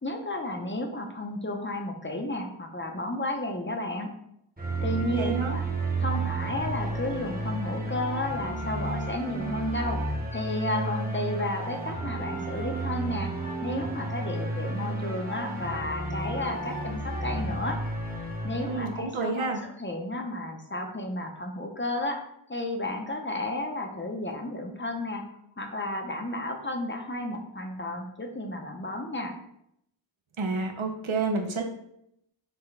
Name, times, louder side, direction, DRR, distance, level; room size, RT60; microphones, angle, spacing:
voice 1, 0.0-4.1 4.8-5.7 6.0-17.8 18.4-22.2 22.5-25.3 25.6-29.4, left 1 dB, 25° left, 3 dB, 0.6 m, -32 dB
sound 1, 4.6-19.1, right 2 dB, 20° right, 1.0 m, -32 dB
voice 2, 5.1-5.6 18.7-19.6 30.4-31.6, right 3 dB, 85° right, 3 dB, 0.7 m, -29 dB
5.9 x 2.3 x 3.2 m, 0.75 s
wide cardioid pair, 55°, 46 cm